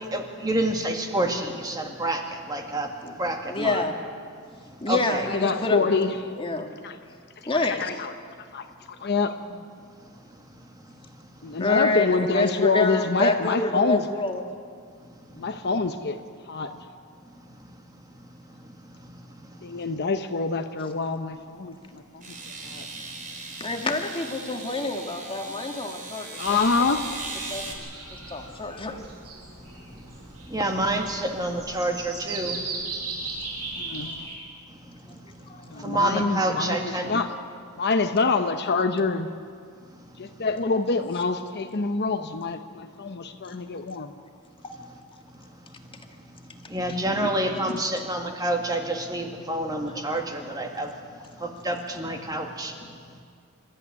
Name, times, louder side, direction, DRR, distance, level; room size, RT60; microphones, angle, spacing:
voice 1, 0.1-2.9 3.2-3.8 4.9-5.3 30.5-32.6 35.8-37.2 46.7-50.9 51.4-52.7, right 1 dB, 15° right, 3 dB, 2.0 m, -28 dB
voice 2, 3.5-3.9 4.8-5.8 6.4-6.7 7.5-7.8 11.6-14.4 23.6-26.6 27.5-27.6 28.3-29.0 35.5-35.7 44.6-44.7 50.4-50.5, left 2 dB, 25° left, 4 dB, 1.8 m, -27 dB
voice 3, 5.3-6.2 6.8-7.0 7.8-8.1 8.5-8.7 9.0-9.6 11.4-14.1 15.4-16.7 19.6-22.4 22.6-22.9 26.4-27.1 27.9-28.0 33.8-34.1 35.7-37.4 37.7-39.3 40.2-44.1 47.1-47.3 47.6-47.8, left 4 dB, 50° left, 7 dB, 0.9 m, -26 dB
sound 1, 22.2-27.7, right 3 dB, 35° right, 3.8 m, -38 dB
sound 2, 26.5-34.4, right 3 dB, 85° right, 6.8 m, -38 dB
26.5 x 13.5 x 9.6 m, 2.2 s
head